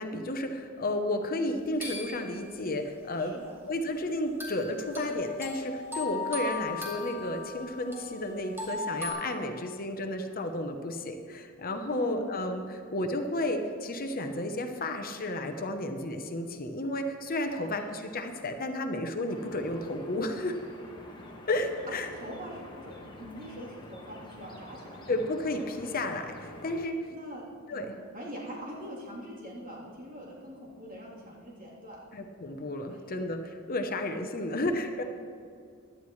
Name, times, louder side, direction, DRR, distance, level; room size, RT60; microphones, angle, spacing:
voice 1, 0.0-3.3 3.7-20.6 21.5-22.1 25.1-27.1 27.7-27.9 32.1-35.0, left 1 dB, 45° left, 5 dB, 0.8 m, -32 dB
sound 1, 1.8-2.5 4.4-9.1, left 2 dB, 10° right, 2.6 m, -37 dB
voice 2, 3.2-3.5 11.9-12.3 17.5-17.8 22.1-25.1 27.1-27.4 27.7-32.0 32.9-33.3 34.4-34.7, equal, 40° right, -5 dB, 3.3 m, -43 dB
sound 2, 19.3-26.8, left 1 dB, 20° left, 1.6 m, -47 dB
17.0 x 11.0 x 3.2 m, 2.3 s
head